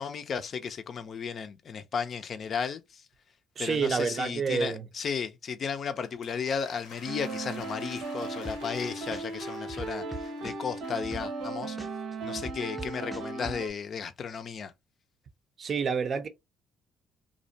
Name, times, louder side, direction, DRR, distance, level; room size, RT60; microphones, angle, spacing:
voice 1, 0.0-3.0 3.6-11.8 12.2-14.7, left 6 dB, 50° left, 0.4 m, -34 dB
voice 2, 3.6-4.9 15.6-16.3, right 5 dB, 50° right, 0.5 m, -28 dB
sound 1, 6.0-11.1, left 5 dB, 90° left, 0.7 m, -51 dB
sound 2, 7.1-13.7, right 3 dB, 80° right, 0.8 m, -37 dB
sound 3, 8.4-8.8 9.1-11.5 11.8-13.6, right 1 dB, ahead, 0.6 m, -40 dB
2.5 x 2.1 x 2.6 m
supercardioid pair, 75°, 0 cm